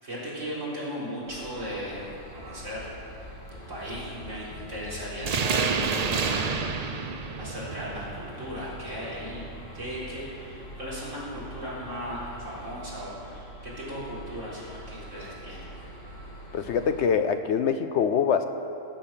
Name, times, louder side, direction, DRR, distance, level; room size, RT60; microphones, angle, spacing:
voice 1, 0.0-2.1 2.3-2.9 3.2-3.3 3.7-6.5 7.3-9.5 9.7-15.7, equal, 65° right, -8 dB, 4.3 m, -37 dB
sound 1, 1.3-17.1, equal, 85° left, 2.5 m, -44 dB
sound 2, 5.2-10.3, right 5 dB, 45° right, 0.5 m, -30 dB
voice 2, 16.5-18.4, left 7 dB, 65° left, 8 dB, 0.8 m, -24 dB
17.0 x 8.4 x 5.8 m, 2.8 s
omnidirectional pair, 1.4 m